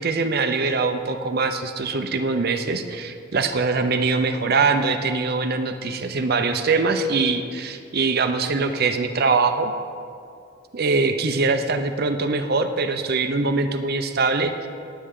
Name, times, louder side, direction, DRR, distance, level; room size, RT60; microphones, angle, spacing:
voice 1, 0.0-9.7 10.7-14.7, right 4 dB, 55° right, 7 dB, 0.7 m, -23 dB
18.5 x 8.0 x 3.8 m, 2.4 s
head